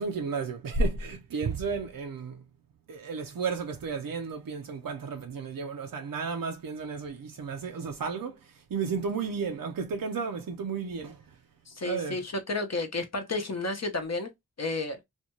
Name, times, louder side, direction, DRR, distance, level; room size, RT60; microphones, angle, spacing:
voice 1, 0.0-2.4 2.9-11.4 11.8-12.2, right 4 dB, 85° right, 0.5 m, -33 dB
voice 2, 11.7-14.3 14.6-15.0, left 2 dB, 50° left, 0.6 m, -31 dB
2.6 x 2.2 x 2.9 m
wide cardioid pair, 50°, 33 cm